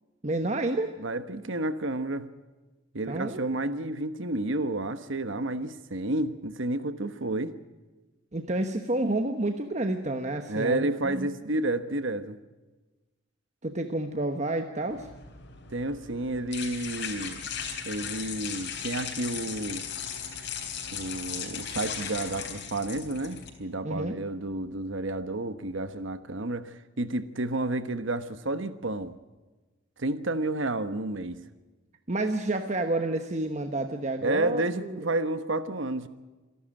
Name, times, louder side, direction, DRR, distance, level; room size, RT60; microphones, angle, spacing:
voice 1, 0.2-1.0 3.1-3.6 8.3-11.3 13.6-15.1 23.8-24.2 32.1-35.1, right 2 dB, 35° right, 6 dB, 1.1 m, -30 dB
voice 2, 1.0-2.3 2.9-7.5 10.5-12.4 15.7-17.4 17.8-19.8 20.9-29.1 30.0-31.4 34.2-36.1, right 2 dB, 70° right, 11 dB, 1.2 m, -30 dB
sound 1, 14.9-23.5, left 7 dB, 55° left, 3.8 m, -37 dB
27.0 x 11.5 x 8.8 m, 1.2 s
head